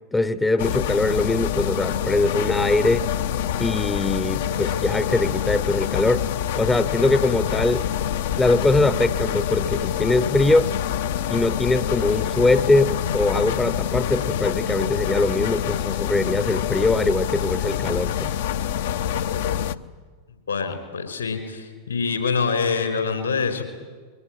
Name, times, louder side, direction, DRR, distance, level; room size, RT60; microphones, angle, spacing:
voice 1, 0.1-3.1 3.6-6.3 6.6-7.9 8.4-10.7 11.3-18.3, left 2 dB, 10° left, 14 dB, 0.7 m, -22 dB
sound 1, 0.6-19.7, left 9 dB, 55° left, 0.7 m, -26 dB
voice 2, 20.5-23.6, left 5 dB, 75° left, 7 dB, 4.7 m, -25 dB
22.5 x 19.5 x 10.0 m, 1.5 s
figure-of-eight pair, 90°, 0 cm